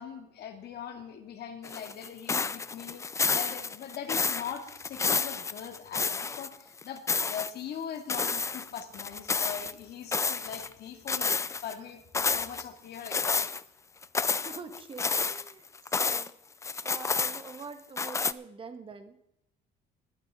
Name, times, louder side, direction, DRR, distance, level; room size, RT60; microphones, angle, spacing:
voice 1, 0.0-3.0 3.3-13.4, left 8 dB, 60° left, 6 dB, 2.3 m, -41 dB
sound 1, 1.6-6.5 6.8-7.5 8.1-9.7 10.1-10.7 11.1-11.7 12.1-12.6 13.1-13.6 14.0-16.3 16.6-17.6 18.0-18.3, left 4 dB, 15° left, 0.4 m, -30 dB
voice 2, 14.3-15.7 16.0-16.3 16.8-19.2, right 4 dB, 30° right, 8 dB, 1.6 m, -45 dB
20.0 x 9.8 x 3.8 m, 0.79 s
cardioid pair, 125°, 19 cm